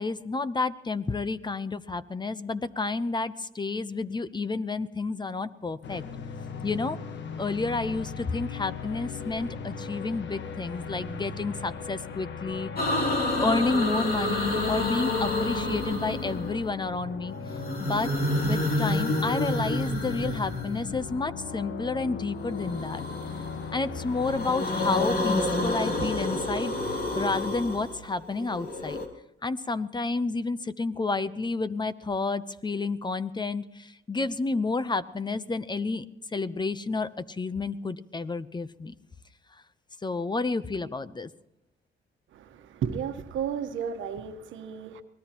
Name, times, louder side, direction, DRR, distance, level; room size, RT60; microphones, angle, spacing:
voice 1, 0.0-6.0 6.6-7.0 7.4-12.7 13.4-17.4 17.8-18.1 18.4-23.0 23.7-26.8 27.1-29.0 29.4-33.6 34.1-36.0 36.3-38.9 40.0-41.3, left 3 dB, 20° left, 0.7 m, -30 dB
sound 1, 5.8-25.1, left 5 dB, 65° left, 1.3 m, -38 dB
sound 2, 12.8-16.7 17.4-21.2 22.5-23.7 24.1-29.1, left 1 dB, 50° left, 3.0 m, -29 dB
voice 2, 42.3-45.0, right 7 dB, 80° right, 1.3 m, -33 dB
24.0 x 19.0 x 3.0 m
cardioid pair, 90°, 20 cm